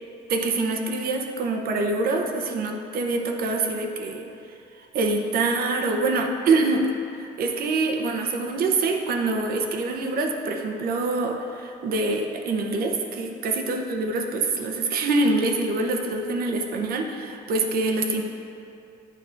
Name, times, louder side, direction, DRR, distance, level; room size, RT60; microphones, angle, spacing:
voice 1, 0.3-4.3 4.9-6.9 7.2-18.2, right 3 dB, 60° right, 3 dB, 0.7 m, -25 dB
9.1 x 5.3 x 2.5 m, 2.7 s
cardioid pair, 110°, 17 cm